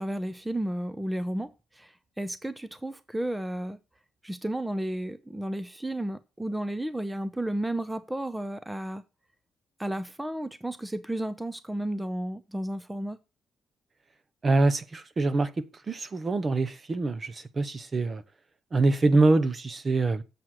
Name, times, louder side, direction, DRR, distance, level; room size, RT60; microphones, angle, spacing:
voice 1, 0.0-3.8 4.2-9.0 9.8-13.2, right 1 dB, 10° right, 0.7 m, -33 dB
voice 2, 14.4-18.2 18.7-20.2, right 2 dB, 35° right, 1.0 m, -25 dB
7.5 x 7.5 x 6.4 m
cardioid pair, 90°, 0 cm